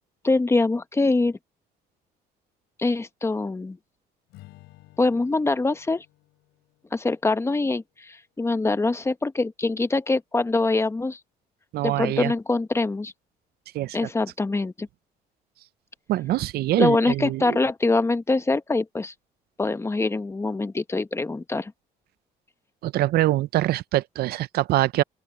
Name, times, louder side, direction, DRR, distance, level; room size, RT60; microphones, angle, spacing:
voice 1, 0.2-1.4 2.8-3.8 5.0-6.0 6.9-11.2 11.8-13.1 13.9-14.9 16.8-19.1 19.6-21.7, left 3 dB, 15° left, 1.0 m, -24 dB
Strum, 4.3-8.7, left 19 dB, 90° left, 6.8 m, -55 dB
voice 2, 11.7-12.3 13.7-14.0 16.1-17.6 22.8-25.0, right 15 dB, 65° right, 0.5 m, -24 dB
open air
cardioid pair, 110°, 17 cm